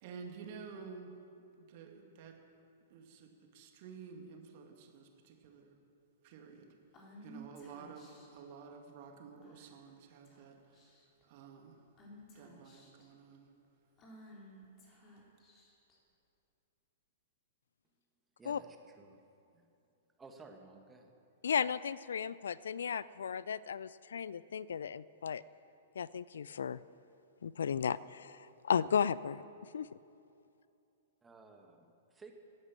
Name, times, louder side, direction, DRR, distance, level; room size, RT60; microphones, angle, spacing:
voice 1, 0.0-1.1 1.6-2.4 2.9-5.8 6.2-6.7 7.2-10.8 11.2-11.8 12.3-13.5, right 5 dB, 45° right, 3 dB, 2.2 m, -51 dB
Female speech woman speaking / Whispering, 6.9-8.4 9.4-9.8 10.2-10.4 10.7-11.2 12.0-13.1 14.0-16.0, equal, 30° left, 3.8 m, -55 dB
voice 2, 18.4-19.2 19.5-19.7 20.2-21.1 31.2-32.3, right 3 dB, 15° right, 3 dB, 1.9 m, -55 dB
voice 3, 21.4-25.4 26.0-26.8 27.4-29.4 29.7-29.9, left 7 dB, 65° left, 19 dB, 0.4 m, -35 dB
17.0 x 11.0 x 7.6 m, 2.7 s
figure-of-eight pair, 105°, 0 cm